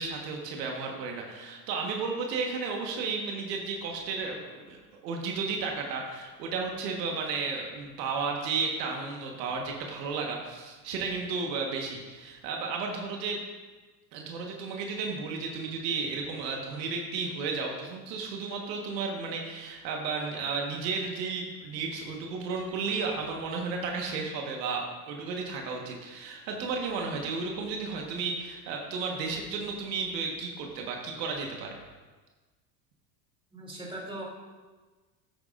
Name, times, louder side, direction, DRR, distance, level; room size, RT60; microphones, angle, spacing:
voice 1, 0.0-13.4 14.1-31.7, right 4 dB, 80° right, 1 dB, 1.5 m, -33 dB
voice 2, 33.5-34.2, right 1 dB, 10° right, -3 dB, 2.7 m, -39 dB
9.6 x 8.5 x 2.5 m, 1.3 s
hypercardioid pair, 90°, 49 cm